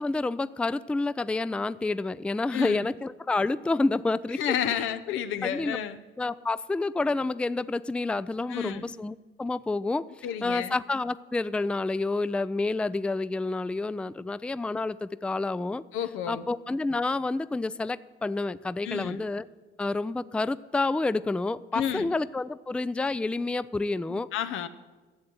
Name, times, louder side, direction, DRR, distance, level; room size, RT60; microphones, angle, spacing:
voice 1, 0.0-4.4 4.7-4.9 5.4-5.8 6.2-15.8 16.3-19.4 19.8-24.3, left 3 dB, 5° left, 16 dB, 0.3 m, -29 dB
voice 2, 4.4-6.0 8.5-8.9 10.2-10.7 15.9-16.5 18.8-19.2 21.7-22.1 24.1-24.7, left 9 dB, 85° left, 11 dB, 0.8 m, -31 dB
11.5 x 7.7 x 9.5 m, 1.3 s
cardioid pair, 90°, 20 cm